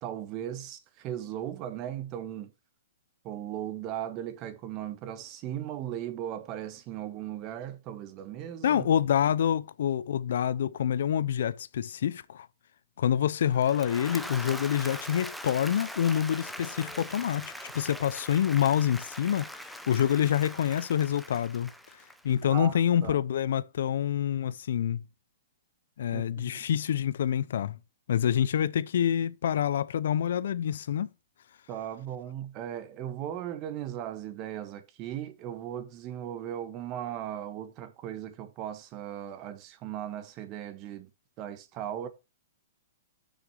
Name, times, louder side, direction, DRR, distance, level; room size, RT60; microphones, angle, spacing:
voice 1, 0.0-2.5 3.2-8.9 22.4-23.2 26.1-26.6 31.7-41.1 41.4-42.1, right 11 dB, 30° right, 1.4 m, -37 dB
voice 2, 8.6-12.5 13.0-21.7 22.2-25.0 26.0-27.8 28.1-31.1, left 9 dB, 70° left, 0.6 m, -27 dB
Applause / Crowd, 13.4-22.6, equal, ahead, 0.7 m, -42 dB
6.5 x 6.1 x 7.0 m
hypercardioid pair, 150°, 0 cm